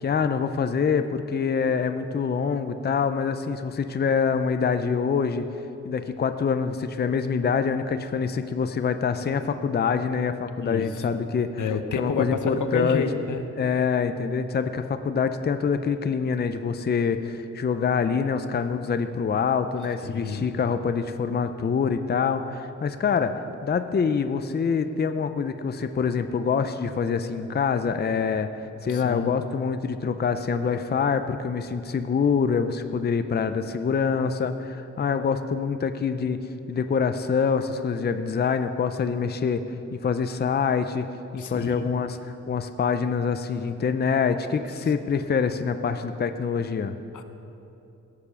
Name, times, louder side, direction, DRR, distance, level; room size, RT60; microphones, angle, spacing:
voice 1, 0.0-5.5 5.8-11.6 11.9-13.0 13.6-23.3 23.6-36.4 36.7-39.6 39.9-41.1 41.3-47.0, left 6 dB, 35° left, 9 dB, 0.5 m, -25 dB
voice 2, 11.6-13.5 20.0-20.5 28.9-29.3 41.3-41.9 47.1-47.2, left 5 dB, 90° left, 8 dB, 0.8 m, -29 dB
16.5 x 7.0 x 7.0 m, 2.8 s
wide cardioid pair, 160°, 29 cm